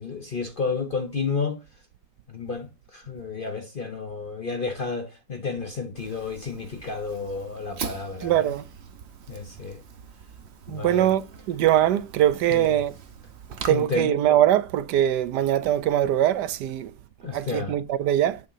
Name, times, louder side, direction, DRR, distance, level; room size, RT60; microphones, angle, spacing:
voice 1, 0.0-1.6 2.3-8.5 9.3-9.8 10.7-11.1 12.5-12.8 13.7-14.1 17.2-17.7, left 4 dB, 45° left, 0.6 m, -31 dB
Fire, 6.0-13.7, right 6 dB, 50° right, 0.8 m, -42 dB
voice 2, 8.2-8.6 10.7-12.9 13.7-16.9 17.3-18.4, right 12 dB, 70° right, 1.1 m, -22 dB
8.3 x 3.7 x 5.6 m
omnidirectional pair, 2.0 m